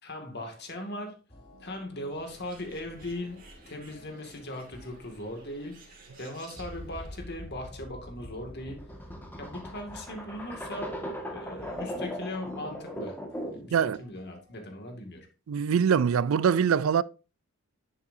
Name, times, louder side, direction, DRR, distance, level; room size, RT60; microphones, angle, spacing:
voice 1, 0.0-1.2 1.6-8.9 9.4-11.0 11.3-13.2 13.5-15.3, left 1 dB, 55° left, 2.2 m, -39 dB
sound 1, 1.3-14.8, left 1 dB, 30° left, 2.9 m, -57 dB
Bird, 2.1-7.2, right 3 dB, 40° right, 2.6 m, -54 dB
sound 2, 6.6-13.7, equal, 10° left, 1.7 m, -39 dB
voice 2, 13.7-14.0 15.5-17.0, right 7 dB, 70° right, 0.4 m, -23 dB
10.5 x 7.3 x 2.7 m
head